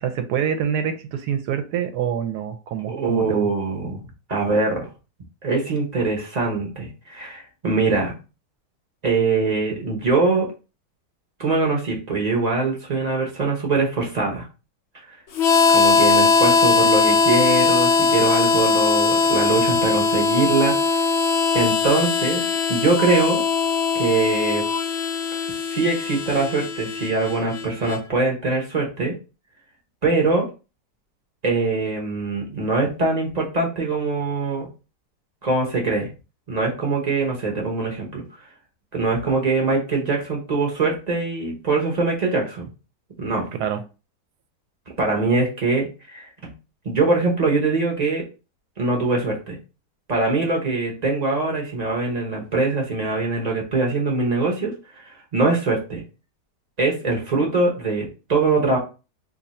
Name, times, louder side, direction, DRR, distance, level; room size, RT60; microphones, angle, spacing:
voice 1, 0.0-3.5 43.5-43.8, right 8 dB, 75° right, 8 dB, 1.1 m, -26 dB
voice 2, 2.9-4.0 4.3-4.9 5.4-8.1 9.0-10.5 11.4-14.5 15.7-21.1 21.5-23.4 23.9-24.6 25.7-29.1 30.0-30.4 31.4-34.7 35.4-36.1 36.5-38.2 38.9-42.6 43.2-43.5 45.0-46.5 46.8-48.2 48.8-49.6 50.1-56.0 56.8-58.8, right 3 dB, 40° right, 0 dB, 0.6 m, -23 dB
Harmonica, 15.3-28.0, left 4 dB, 85° left, 0.6 m, -20 dB
2.7 x 2.6 x 4.1 m, 0.32 s
omnidirectional pair, 1.8 m